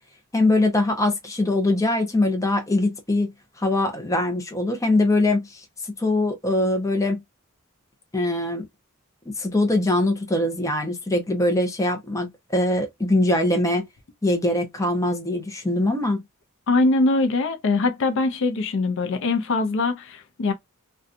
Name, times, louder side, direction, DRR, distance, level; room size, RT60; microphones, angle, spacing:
voice 1, 0.3-3.3 3.6-5.6 6.0-7.2 8.1-8.6 9.4-13.8 14.2-16.2, left 2 dB, 15° left, 0.6 m, -22 dB
voice 2, 16.7-20.5, left 3 dB, 60° left, 0.5 m, -22 dB
2.6 x 2.2 x 2.4 m
head